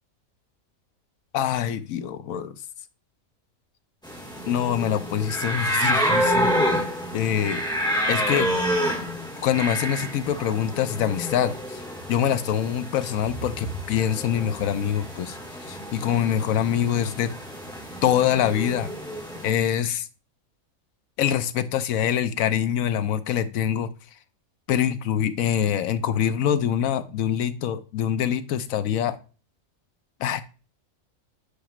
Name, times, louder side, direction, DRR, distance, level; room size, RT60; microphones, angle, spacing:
voice 1, 1.3-2.6 4.5-6.8 7.1-7.6 8.1-8.7 9.4-11.8 12.1-15.4 15.6-17.3 18.0-18.9 19.4-20.1 21.2-23.9 24.7-29.2 30.2-30.4, left 9 dB, 80° left, 12 dB, 1.1 m, -24 dB
sound 1, 4.0-19.5, equal, 5° left, 1.9 m, -28 dB
10.0 x 4.8 x 3.1 m, 0.34 s
omnidirectional pair, 1.4 m